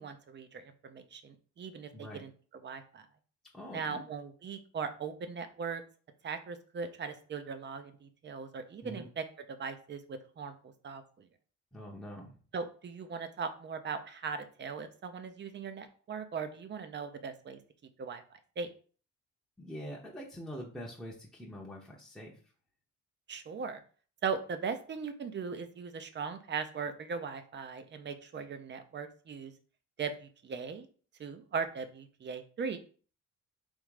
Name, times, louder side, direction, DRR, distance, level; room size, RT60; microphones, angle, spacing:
voice 1, 0.0-2.3 2.6-3.0 3.7-5.8 6.2-10.5 10.8-11.0 12.5-17.6 18.0-18.2 18.6-18.7 23.3-23.8 24.2-29.5 30.0-30.9 31.2-32.8, right 5 dB, 35° right, 10 dB, 0.6 m, -39 dB
voice 2, 1.9-2.2 3.5-4.0 8.8-9.1 11.7-12.3 19.6-22.4, equal, ahead, -4 dB, 0.8 m, -44 dB
3.6 x 3.1 x 4.8 m, 0.41 s
cardioid pair, 145°, 31 cm